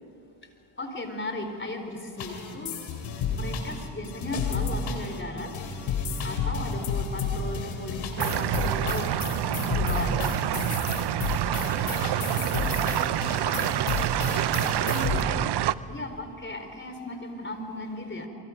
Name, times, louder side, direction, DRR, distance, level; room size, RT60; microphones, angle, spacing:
voice 1, 0.8-2.8 3.3-5.5 6.2-9.1 9.4-10.5 14.9-15.5 15.9-18.3, left 2 dB, 25° left, 5 dB, 4.4 m, -36 dB
sound 1, 2.2-15.2, left 5 dB, 85° left, 3.2 m, -31 dB
sound 2, 8.2-15.7, right 12 dB, 60° right, 0.8 m, -27 dB
voice 2, 11.8-15.1, left 2 dB, 65° left, -3 dB, 5.8 m, -45 dB
29.5 x 23.5 x 5.3 m, 2.3 s
supercardioid pair, 65°, 47 cm